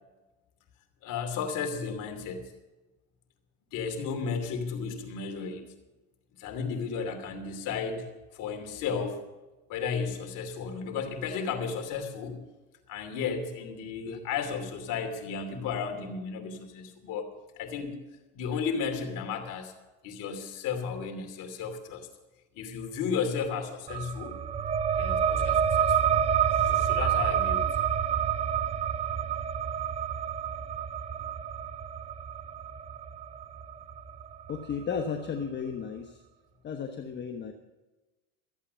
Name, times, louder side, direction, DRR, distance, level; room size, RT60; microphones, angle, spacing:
voice 1, 1.0-2.5 3.7-5.7 6.4-8.0 8.3-9.2 9.7-12.4 12.9-17.3 17.6-18.0 18.3-19.7 20.0-22.1 22.5-24.3 25.0-26.0 26.6-27.7, left 6 dB, 55° left, 5 dB, 2.8 m, -33 dB
sound 1, 23.9-35.0, right 8 dB, 20° right, 0.4 m, -28 dB
voice 2, 34.5-36.2 36.6-37.5, left 6 dB, 30° left, 4 dB, 1.1 m, -34 dB
14.5 x 8.5 x 6.9 m, 1.1 s
supercardioid pair, 110°, 38 cm